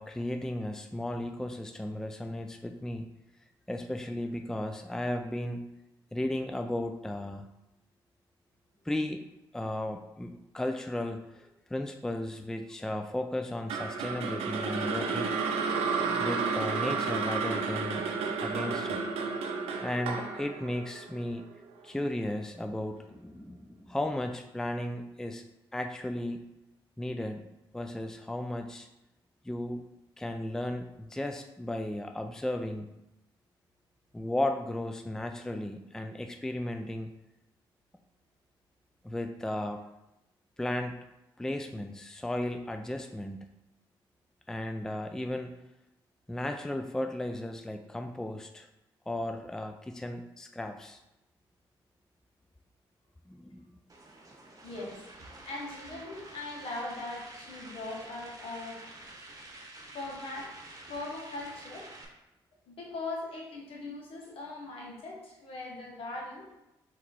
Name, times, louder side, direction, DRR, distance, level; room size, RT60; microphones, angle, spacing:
voice 1, 0.0-3.1 3.7-5.7 6.1-7.5 8.9-9.2 9.5-15.3 16.2-18.1 18.4-19.0 19.8-21.4 21.8-25.4 25.7-26.4 27.0-27.5 27.7-28.9 29.4-29.8 30.2-32.9 34.1-37.1 39.0-39.8 40.6-41.0 41.4-43.5 44.5-45.5 46.3-48.7 49.1-51.0 53.3-53.6, left 1 dB, 5° left, 5 dB, 0.3 m, -35 dB
sound 1, 13.7-21.9, right 5 dB, 85° right, 0.5 m, -32 dB
sound 2, 53.9-62.0, right 2 dB, 35° right, 1.1 m, -49 dB
voice 2, 54.6-55.0 55.4-58.8 59.9-60.5 60.9-61.9 62.7-66.5, left 2 dB, 70° left, -2 dB, 1.4 m, -40 dB
4.1 x 3.1 x 4.2 m, 0.93 s
supercardioid pair, 55°, 10 cm